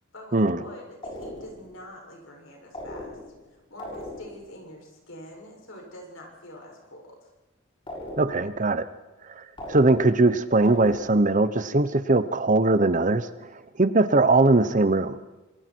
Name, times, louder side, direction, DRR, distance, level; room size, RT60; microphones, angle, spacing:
voice 1, 0.1-3.2 3.5-7.3, left 1 dB, 70° left, 0 dB, 7.1 m, -45 dB
sound 1, 1.0-1.7 2.7-3.5 3.8-4.5 7.9-8.6 9.6-10.3 10.7-11.4, left 1 dB, 25° left, 6.8 m, -39 dB
voice 2, 8.2-8.9 9.4-13.3 13.8-15.2, right 2 dB, 40° right, 13 dB, 1.0 m, -20 dB
27.5 x 22.0 x 4.7 m, 1.1 s
head